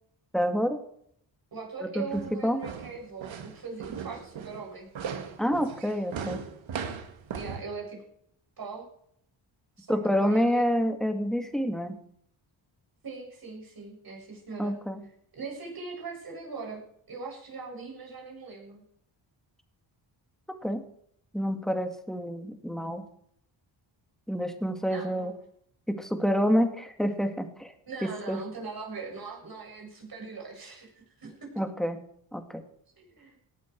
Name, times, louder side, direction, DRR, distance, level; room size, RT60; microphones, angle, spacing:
voice 1, 0.3-0.8 1.8-2.6 5.4-6.4 9.9-12.0 14.6-15.0 20.6-20.8 21.3-23.1 24.3-25.3 25.9-27.7 28.0-28.4 31.6-32.0 32.3-32.6, equal, ahead, 6 dB, 2.2 m, -28 dB
voice 2, 1.5-4.9 7.3-8.0 8.6-8.9 9.8-10.6 13.0-14.8 15.3-16.8 17.1-18.8 24.9-25.3 27.9-31.5 33.0-33.4, right 4 dB, 50° right, -1 dB, 7.6 m, -40 dB
sound 1, 2.1-7.6, right 7 dB, 80° right, 2.1 m, -38 dB
18.0 x 12.0 x 4.7 m, 0.68 s
cardioid pair, 90°, 46 cm